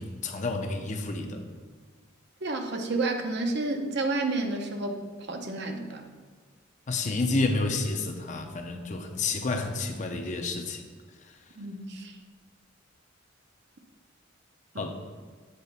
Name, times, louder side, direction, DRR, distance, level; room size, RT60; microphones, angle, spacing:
voice 1, 0.0-1.5 6.9-10.8 14.8-14.9, left 3 dB, 40° left, 4 dB, 0.7 m, -30 dB
voice 2, 2.4-5.0 5.3-6.0 11.6-12.1 14.7-14.9, right 2 dB, 60° right, 4 dB, 0.8 m, -30 dB
8.4 x 4.3 x 5.6 m, 1.5 s
head